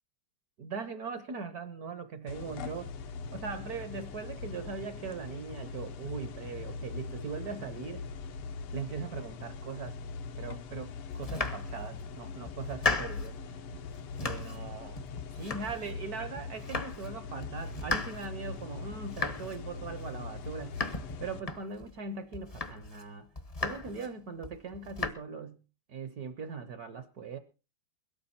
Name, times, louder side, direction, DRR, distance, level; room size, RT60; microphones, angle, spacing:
voice 1, 0.6-2.9 3.3-8.1 8.7-10.0 10.4-13.6 14.2-15.0 15.3-20.8 21.2-23.3 23.6-25.6 25.9-27.4, right 5 dB, 60° right, 1.1 m, -40 dB
sound 1, 2.3-21.4, left 5 dB, 85° left, 1.9 m, -42 dB
Domestic sounds home sounds, 11.1-12.1 12.5-13.4 13.7-14.7 15.0-16.1 16.4-17.1 17.4-22.0 22.3-23.0 23.4-24.1 24.4-25.1, left 3 dB, 35° left, 0.5 m, -36 dB
22.5 x 8.7 x 4.2 m
omnidirectional pair, 2.4 m